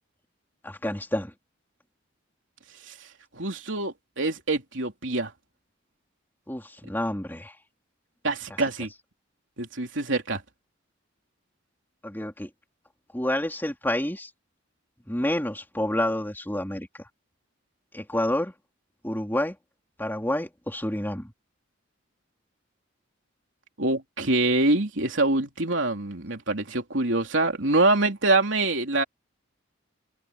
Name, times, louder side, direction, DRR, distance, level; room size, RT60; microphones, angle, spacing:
voice 1, 0.6-1.3 6.5-7.5 12.0-12.5 13.1-14.3 15.1-16.9 17.9-18.5 19.0-19.6 20.0-21.3, left 1 dB, 10° left, 3.2 m, -28 dB
voice 2, 3.3-5.3 8.2-8.9 9.6-10.4 23.8-29.0, right 2 dB, 70° right, 3.7 m, -25 dB
head